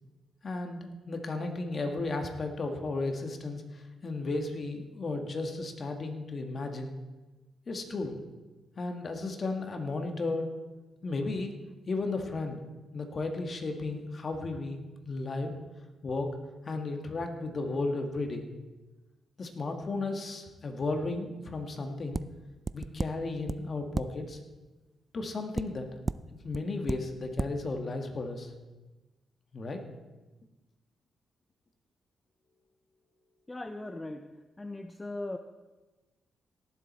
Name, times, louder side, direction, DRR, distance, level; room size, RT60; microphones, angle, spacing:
voice 1, 0.4-6.9 7.7-8.2 8.8-10.5 11.0-11.5 11.9-12.6 12.9-15.5 16.0-16.3 16.6-18.5 19.4-22.2 22.7-24.4 25.1-25.9 26.3-28.5 29.5-29.8, left 3 dB, 45° left, 5 dB, 1.6 m, -34 dB
sound 1, 22.1-22.2 22.6-23.1 23.4-23.6 23.9-24.1 25.5-25.6 26.1-26.2 26.5-26.6 26.9-27.0 27.4-27.5, right 3 dB, 30° right, 0.4 m, -31 dB
voice 2, 33.5-35.4, left 2 dB, 20° left, 7 dB, 0.6 m, -39 dB
18.0 x 7.6 x 4.2 m, 1.2 s
cardioid pair, 80°, 0 cm